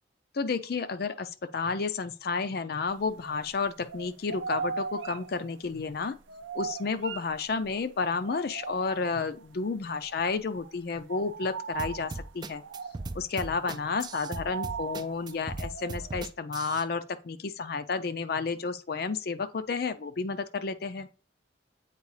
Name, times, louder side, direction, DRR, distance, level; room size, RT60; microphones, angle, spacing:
voice 1, 0.3-6.1 6.5-12.6 13.1-21.1, left 4 dB, 55° left, 0.4 m, -31 dB
sound 1, 2.9-3.6 3.9-7.8 8.2-9.5 9.9-10.2 10.4-16.2, right 5 dB, 80° right, 0.5 m, -39 dB
sound 2, 11.8-16.8, right 3 dB, 20° right, 0.3 m, -38 dB
8.3 x 4.5 x 3.2 m
head